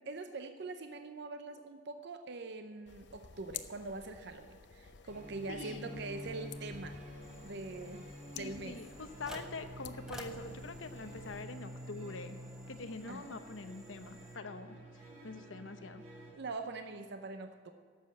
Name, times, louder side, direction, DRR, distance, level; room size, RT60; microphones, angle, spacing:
voice 1, 0.1-7.0 7.4-8.1 8.3-8.8 13.1-13.2 15.1-15.5 16.3-17.7, right 3 dB, 60° right, 7 dB, 0.7 m, -43 dB
sound 1, 2.9-11.4, left 7 dB, 65° left, 0.7 m, -52 dB
sound 2, 5.1-16.3, equal, 40° right, 4.3 m, -49 dB
voice 2, 5.5-6.0 8.3-12.4 12.7-16.0, left 3 dB, 90° left, 9 dB, 1.0 m, -45 dB
sound 3, 7.2-14.4, equal, 5° right, 1.4 m, -54 dB
12.0 x 7.6 x 8.6 m, 2.1 s
head